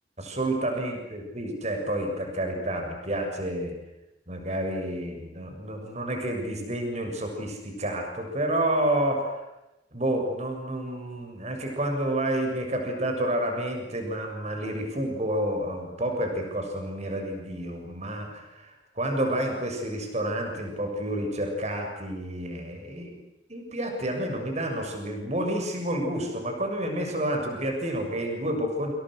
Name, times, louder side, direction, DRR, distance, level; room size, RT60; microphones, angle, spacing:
voice 1, 0.2-3.8 4.3-9.4 9.9-23.2 23.5-28.9, right 1 dB, 40° right, 3 dB, 7.0 m, -29 dB
29.5 x 28.5 x 6.5 m, 0.94 s
head